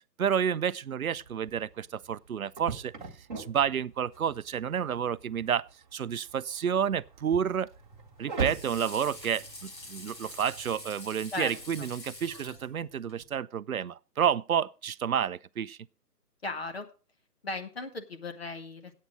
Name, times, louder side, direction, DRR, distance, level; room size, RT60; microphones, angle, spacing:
voice 1, 0.2-2.9 3.4-5.7 5.9-7.7 8.2-15.8, right 8 dB, 60° right, 0.5 m, -30 dB
sound 1, 1.1-10.8, right 4 dB, 30° right, 1.1 m, -42 dB
Water / Sink (filling or washing), 7.8-13.2, left 2 dB, 90° left, 5.9 m, -46 dB
voice 2, 16.4-16.9 17.4-18.9, left 3 dB, 40° left, 1.1 m, -36 dB
8.7 x 8.3 x 6.1 m
figure-of-eight pair, 165°, 49 cm